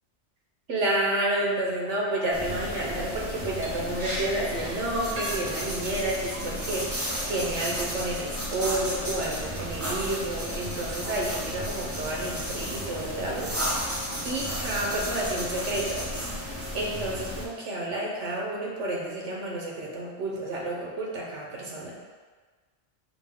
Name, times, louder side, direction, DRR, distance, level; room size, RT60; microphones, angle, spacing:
voice 1, 0.7-16.1 16.7-22.0, right 1 dB, 75° right, -2 dB, 1.2 m, -30 dB
sound 1, 2.3-17.5, equal, 20° right, 0.4 m, -33 dB
Liquid, 3.6-3.7 4.0-4.2 4.5-4.8 5.2-5.5 6.2-6.3 6.7-7.6 8.0-8.5, right 1 dB, 35° right, 0.9 m, -38 dB
5.0 x 2.2 x 3.5 m, 1.4 s
omnidirectional pair, 1.2 m